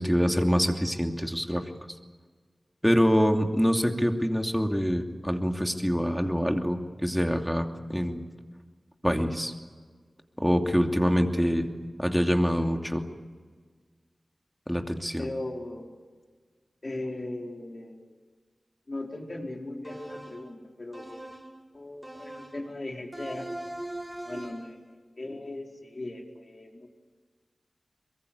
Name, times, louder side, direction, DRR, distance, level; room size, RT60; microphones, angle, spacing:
voice 1, 0.0-1.6 2.8-8.2 9.0-9.5 10.4-11.7 12.0-13.0 14.7-15.3, equal, ahead, 4 dB, 2.8 m, -25 dB
voice 2, 15.2-15.9 16.8-18.1 18.9-21.2 21.7-23.5 24.2-24.8 25.2-26.9, left 2 dB, 50° left, 1 dB, 4.7 m, -38 dB
sound 1, 19.8-20.5 20.9-21.6 22.0-22.7 23.1-24.8, right 1 dB, 20° right, 5.0 m, -40 dB
23.5 x 22.0 x 8.5 m, 1.5 s
wide cardioid pair, 50°, 0 cm